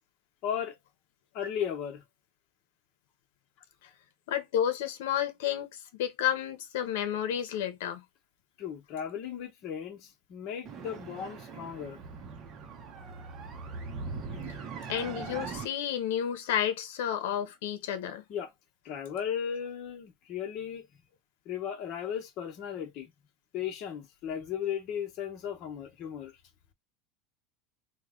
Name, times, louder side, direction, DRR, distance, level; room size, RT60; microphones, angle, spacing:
voice 1, 0.4-0.8 1.3-2.0 8.6-12.0 14.3-14.4 18.3-18.5 18.8-21.0 21.4-23.1 23.5-26.3, left 8 dB, 45° left, 1.0 m, -36 dB
voice 2, 4.3-8.0 14.9-18.2, left 10 dB, 80° left, 0.8 m, -31 dB
sound 1, 10.6-15.6, right 4 dB, 30° right, 0.7 m, -41 dB
3.1 x 2.2 x 3.6 m
supercardioid pair, 150°, 0 cm